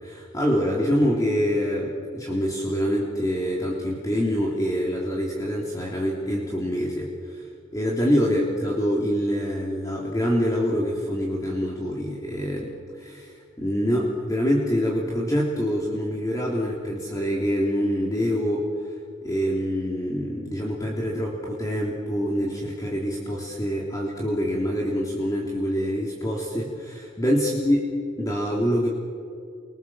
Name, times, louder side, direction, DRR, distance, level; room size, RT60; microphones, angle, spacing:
voice 1, 0.0-7.4 7.7-18.9 19.2-27.8 28.2-28.9, equal, 20° left, -3 dB, 3.3 m, -25 dB
30.0 x 24.5 x 7.5 m, 2.3 s
head